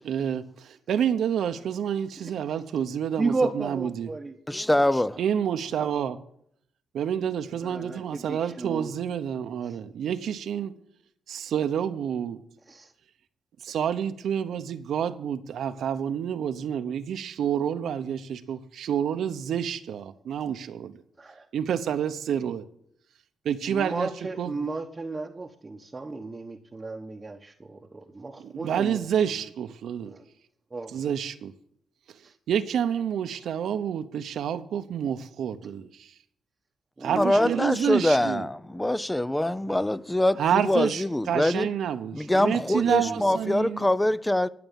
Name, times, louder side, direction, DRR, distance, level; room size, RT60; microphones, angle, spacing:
voice 1, 0.0-4.1 5.2-6.2 6.9-10.7 11.3-12.4 13.6-21.0 21.5-22.6 23.4-24.1 24.4-24.5 28.4-30.1 30.9-31.5 32.5-36.1 37.0-38.5 40.4-43.9, right 8 dB, 75° right, 0.8 m, -28 dB
voice 2, 3.2-4.4 7.6-8.9 9.6-9.8 12.7-12.9 21.2-21.5 23.6-29.5 30.1-30.2 30.7-31.2 32.2-32.3 37.0-37.6 42.8-43.2, right 3 dB, 25° right, 1.0 m, -34 dB
voice 3, 4.5-5.2 37.2-41.7 42.1-44.5, left 1 dB, 10° left, 0.5 m, -24 dB
13.0 x 7.0 x 7.0 m
cardioid pair, 90°, 0 cm